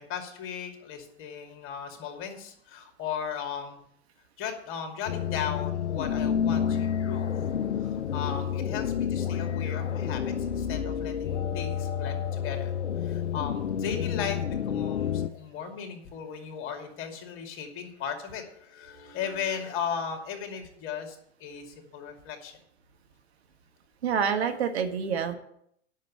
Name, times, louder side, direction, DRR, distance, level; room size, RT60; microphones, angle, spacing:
voice 1, 0.0-3.8 4.4-7.4 7.8-12.7 13.0-22.6, left 7 dB, 35° left, 3 dB, 2.6 m, -37 dB
sound 1, 5.1-15.3, left 8 dB, 80° left, 0.7 m, -29 dB
voice 2, 24.0-25.3, right 7 dB, 65° right, 6 dB, 1.6 m, -27 dB
10.5 x 6.5 x 8.6 m, 0.70 s
figure-of-eight pair, 95°, 34 cm